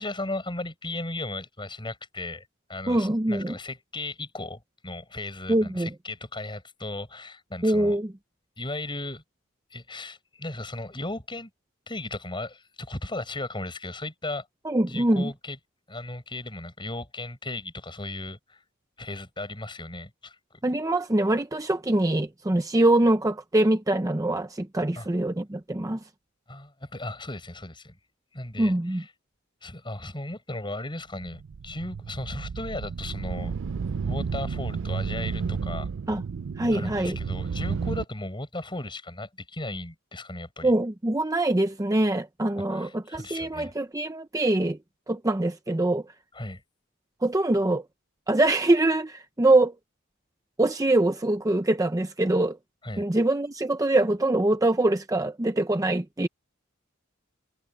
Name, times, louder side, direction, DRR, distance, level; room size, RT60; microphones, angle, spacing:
voice 1, 0.0-8.0 8.6-9.2 9.7-11.5 11.9-14.5 14.9-15.6 15.9-18.6 19.0-20.6 25.0-25.1 26.5-28.0 28.3-29.1 29.6-33.6 34.0-35.9 36.7-40.7 42.7-43.7 46.3-46.6 52.8-53.0, left 2 dB, 25° left, 7.4 m, -36 dB
voice 2, 2.9-3.6 5.5-5.9 7.6-8.1 14.7-15.3 20.6-26.0 28.6-29.0 36.1-36.2 36.6-37.2 40.6-44.8 45.1-46.0 47.2-47.8 48.3-49.7 50.6-52.6 53.0-56.3, right 1 dB, 15° right, 0.7 m, -24 dB
sound 1, 31.2-38.0, right 5 dB, 60° right, 0.4 m, -32 dB
head